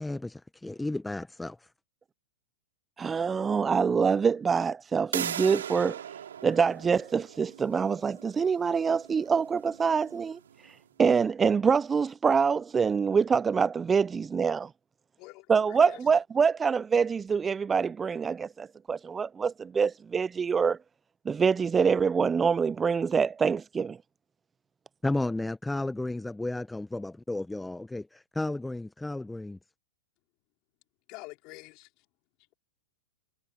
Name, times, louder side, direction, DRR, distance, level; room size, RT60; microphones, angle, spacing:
voice 1, 0.0-1.7 25.0-29.6, left 2 dB, 5° left, 0.9 m, -33 dB
voice 2, 3.0-6.0 6.4-10.4 11.0-14.7 15.5-20.8 21.3-24.0, right 6 dB, 15° right, 0.3 m, -25 dB
sound 1, 5.1-10.7, right 9 dB, 75° right, 3.3 m, -39 dB
voice 3, 15.2-16.0 31.1-31.9, left 24 dB, 45° left, 4.5 m, -46 dB
hypercardioid pair, 115°, 0 cm